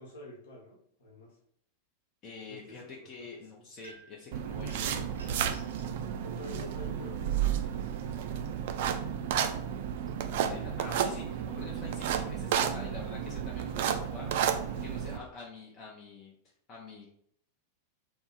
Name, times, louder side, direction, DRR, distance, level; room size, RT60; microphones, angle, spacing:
voice 1, 0.0-1.4 2.5-3.3 3.5-3.6 6.2-7.8, left 1 dB, 60° left, -1 dB, 1.1 m, -48 dB
voice 2, 2.2-5.6 10.4-16.3 16.7-17.1, left 4 dB, 30° left, -2 dB, 0.6 m, -47 dB
sound 1, 3.8-4.2 4.7-5.9, right 3 dB, 70° right, 0.7 m, -53 dB
sound 2, 4.3-15.2, right 9 dB, 55° right, 0.3 m, -32 dB
3.4 x 2.0 x 3.8 m, 0.67 s
figure-of-eight pair, 90°, 0 cm